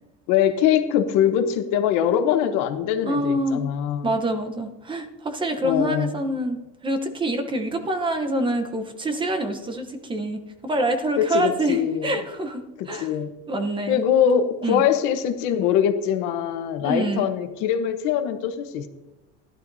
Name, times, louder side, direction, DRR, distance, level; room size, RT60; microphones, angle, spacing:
voice 1, 0.3-4.1 5.6-6.1 11.2-12.1 12.8-13.3 13.9-18.9, left 9 dB, 80° left, 8 dB, 1.1 m, -22 dB
voice 2, 3.0-3.6 4.0-13.1 13.5-14.0 14.6-14.8 16.8-17.3, right 1 dB, 15° right, 6 dB, 0.9 m, -26 dB
17.0 x 11.5 x 2.7 m, 1.0 s
cardioid pair, 170°, 30 cm